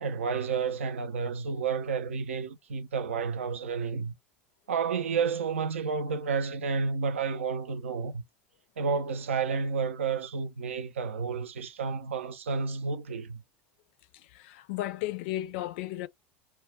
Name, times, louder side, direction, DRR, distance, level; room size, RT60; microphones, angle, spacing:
voice 1, 0.0-4.1 4.7-8.2 8.8-13.4, right 5 dB, 80° right, 0.4 m, -31 dB
voice 2, 14.1-16.1, left 15 dB, 60° left, 0.3 m, -34 dB
2.3 x 2.1 x 3.3 m
figure-of-eight pair, 80°, 7 cm